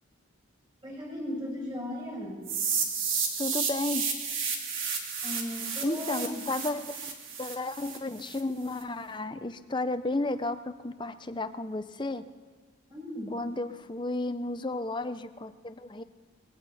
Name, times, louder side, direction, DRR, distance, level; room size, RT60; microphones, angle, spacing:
voice 1, 0.8-2.5 5.2-6.5 12.9-13.3, left 1 dB, 20° right, -3 dB, 6.0 m, -37 dB
sound 1, 2.5-8.4, right 6 dB, 85° right, 2.7 m, -32 dB
voice 2, 3.4-4.1 5.8-7.1 7.4-12.3 13.3-16.0, left 2 dB, 25° left, 11 dB, 0.6 m, -33 dB
20.5 x 16.5 x 4.2 m, 1.5 s
head